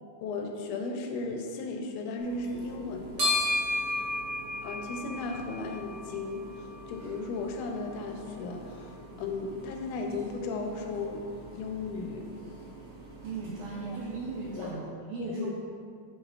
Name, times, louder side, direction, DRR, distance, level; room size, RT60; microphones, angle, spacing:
voice 1, 0.2-3.4 4.6-11.3 11.5-12.3 13.9-14.0 14.6-14.8 15.2-15.5, left 3 dB, 85° left, 3 dB, 2.1 m, -35 dB
sound 1, 2.2-14.7, left 2 dB, 55° right, 2.0 m, -37 dB
voice 2, 13.2-15.5, right 4 dB, 85° right, -3 dB, 1.5 m, -37 dB
6.6 x 6.4 x 2.4 m, 2.2 s
omnidirectional pair, 3.5 m